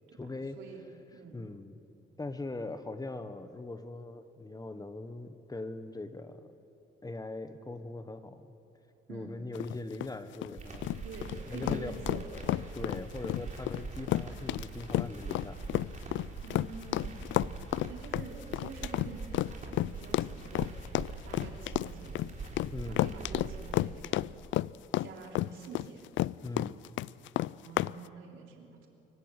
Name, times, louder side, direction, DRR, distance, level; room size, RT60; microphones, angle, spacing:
voice 1, 0.2-0.6 1.3-1.8 2.2-6.5 7.0-8.5 9.1-10.9 11.5-12.0 12.7-15.6 22.7-23.0 26.4-26.8, left 2 dB, 20° left, 10 dB, 1.3 m, -41 dB
voice 2, 1.1-1.4 9.1-9.4 11.0-12.2 16.4-20.8 21.2-22.2 22.9-24.3 25.0-26.1 27.6-28.9, right 4 dB, 80° right, 1 dB, 3.4 m, -47 dB
sound 1, 9.5-27.9, left 15 dB, 75° left, 0.4 m, -31 dB
sound 2, 10.6-23.8, right 3 dB, 40° right, 4.0 m, -43 dB
25.0 x 15.0 x 9.0 m, 2.8 s
cardioid pair, 90°, 20 cm